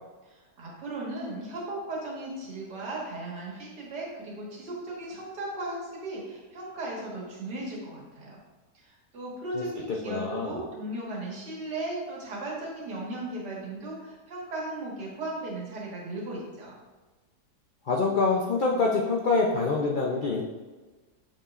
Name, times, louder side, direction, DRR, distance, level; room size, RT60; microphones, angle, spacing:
voice 1, 0.3-8.4 8.7-16.7, right 2 dB, 85° right, -4 dB, 2.2 m, -36 dB
voice 2, 10.1-10.6 17.9-20.4, left 3 dB, 75° left, -2 dB, 0.4 m, -25 dB
7.0 x 5.6 x 2.5 m, 1.3 s
omnidirectional pair, 1.8 m